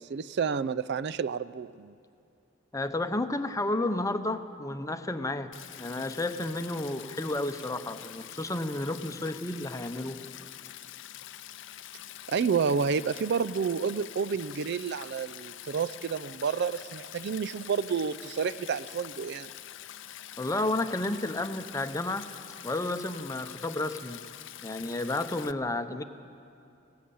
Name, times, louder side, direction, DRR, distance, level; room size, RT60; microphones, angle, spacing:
voice 1, 0.0-1.9 12.3-19.5, right 6 dB, 55° right, 15 dB, 0.4 m, -30 dB
voice 2, 2.7-5.5 5.8-10.2 20.4-22.3 22.6-24.2 24.6-26.0, left 2 dB, 15° left, 9 dB, 0.7 m, -31 dB
Stream, 5.5-25.5, left 12 dB, 65° left, 0.5 m, -45 dB
19.0 x 17.5 x 8.6 m, 2.6 s
head